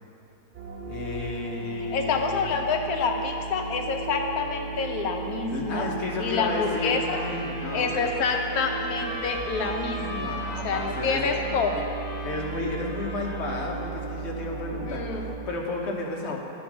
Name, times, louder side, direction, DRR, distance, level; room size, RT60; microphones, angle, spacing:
sound 1, 0.5-15.4, right 4 dB, 40° right, 0.8 m, -36 dB
voice 1, 0.9-2.5 5.5-8.1 10.1-11.3 12.2-16.4, left 2 dB, 50° left, 0 dB, 1.1 m, -33 dB
voice 2, 1.8-5.9 6.2-7.2 7.7-10.3 10.6-11.9 14.9-15.2, left 5 dB, 75° left, 3 dB, 1.2 m, -27 dB
sound 2, 6.0-13.8, left 1 dB, 20° left, 2.2 m, -39 dB
10.5 x 4.3 x 6.1 m, 2.9 s
omnidirectional pair, 1.6 m